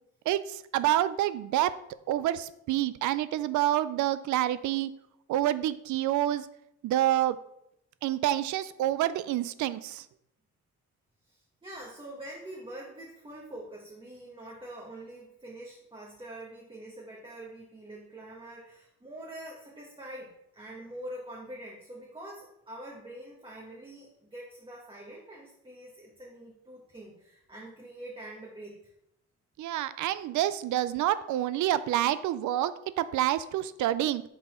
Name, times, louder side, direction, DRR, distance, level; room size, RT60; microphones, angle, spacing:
voice 1, 0.3-1.7 2.1-4.9 5.3-6.5 6.8-7.4 8.0-10.0 29.6-32.7 33.0-34.2, right 13 dB, 75° right, 16 dB, 0.4 m, -27 dB
voice 2, 11.3-28.9, right 1 dB, 15° right, -3 dB, 1.2 m, -45 dB
5.7 x 4.0 x 4.3 m, 0.79 s
cardioid pair, 90°, 30 cm